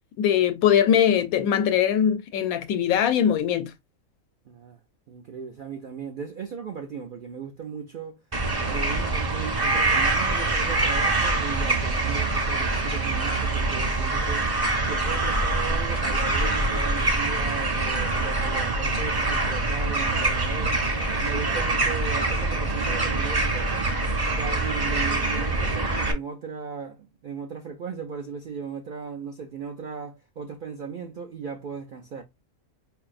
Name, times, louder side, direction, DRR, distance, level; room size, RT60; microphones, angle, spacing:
voice 1, 0.2-3.7, left 9 dB, 90° left, 1.1 m, -21 dB
voice 2, 4.5-4.8 5.1-8.2 8.6-14.5 14.8-23.9 24.3-32.2, right 6 dB, 80° right, 0.4 m, -37 dB
sound 1, 8.3-26.1, right 2 dB, 25° right, 0.5 m, -25 dB
4.7 x 2.6 x 2.4 m
omnidirectional pair, 1.4 m